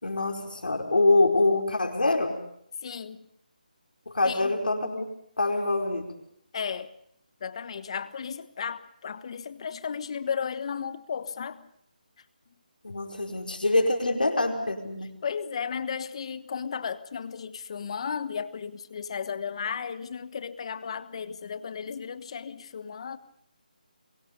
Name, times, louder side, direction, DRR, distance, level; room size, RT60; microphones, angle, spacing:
voice 1, 0.0-2.4 4.1-5.1 5.4-6.1 12.8-15.1, left 2 dB, 85° left, 4.8 m, -25 dB
voice 2, 2.8-3.3 4.2-4.6 6.5-6.9 7.4-11.7 15.2-23.2, left 6 dB, 40° left, 1.4 m, -34 dB
27.0 x 23.0 x 5.3 m
figure-of-eight pair, 160°, 5 cm